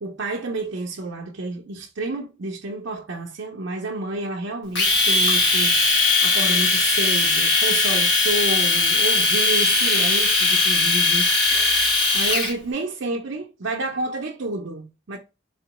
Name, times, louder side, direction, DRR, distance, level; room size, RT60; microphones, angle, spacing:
voice 1, 0.0-15.2, right 2 dB, 70° right, 0.6 m, -30 dB
Domestic sounds home sounds, 4.8-12.5, left 3 dB, 60° left, 1.3 m, -19 dB
4.2 x 2.9 x 2.9 m
head